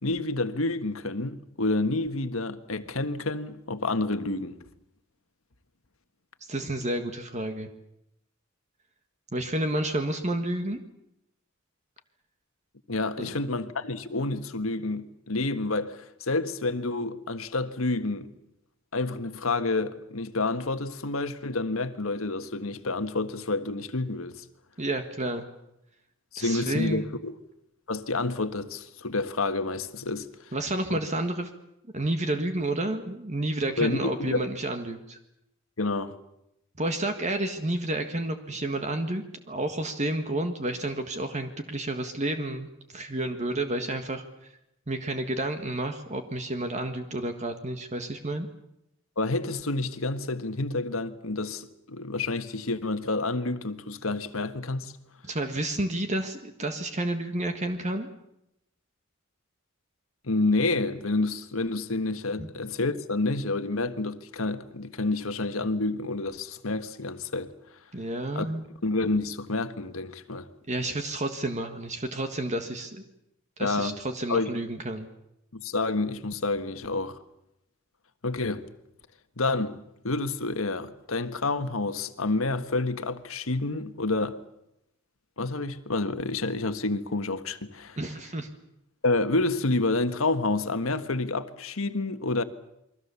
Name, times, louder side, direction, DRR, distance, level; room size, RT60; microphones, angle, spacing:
voice 1, 0.0-4.6 12.9-18.3 18.9-24.4 26.3-27.3 27.9-30.3 30.9-31.0 33.8-34.5 35.8-36.1 49.2-54.9 60.2-67.5 68.3-68.5 68.8-70.5 73.6-74.0 74.3-74.5 75.5-77.2 78.2-78.6 79.4-84.4 85.4-88.0 89.0-92.4, left 2 dB, 85° left, 1.6 m, -29 dB
voice 2, 6.5-7.7 9.3-10.8 13.3-13.4 24.8-25.4 26.3-27.1 30.5-31.5 31.9-35.2 36.8-42.7 42.9-44.2 44.9-48.5 55.2-58.1 62.4-62.5 67.9-68.6 70.7-73.0 73.6-75.1 88.0-88.5, right 1 dB, 35° right, 1.6 m, -30 dB
29.0 x 22.5 x 7.1 m
head